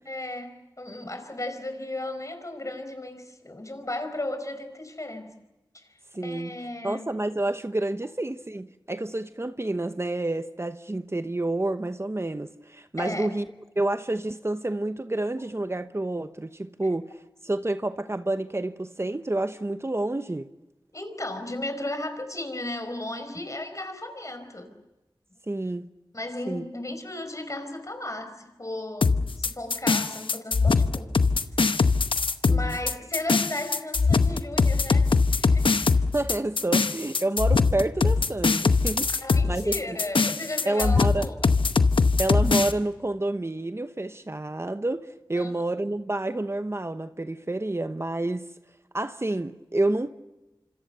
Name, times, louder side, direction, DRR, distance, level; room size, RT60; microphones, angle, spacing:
voice 1, 0.1-5.3 5.7-6.0 6.2-7.1 13.0-13.3 20.9-24.7 26.1-31.2 32.5-35.8 39.2-41.5 45.3-45.5, left 1 dB, 40° left, 4.8 m, -35 dB
voice 2, 6.1-6.5 6.8-13.5 13.8-20.5 25.5-25.9 26.5-26.6 32.5-32.8 36.1-39.1 39.4-40.0 40.7-41.3 42.2-48.5 48.9-50.1, right 2 dB, 30° right, 0.9 m, -29 dB
sound 1, 29.0-42.7, left 4 dB, 85° left, 1.0 m, -22 dB
26.5 x 26.5 x 6.8 m
wide cardioid pair, 45°, 9 cm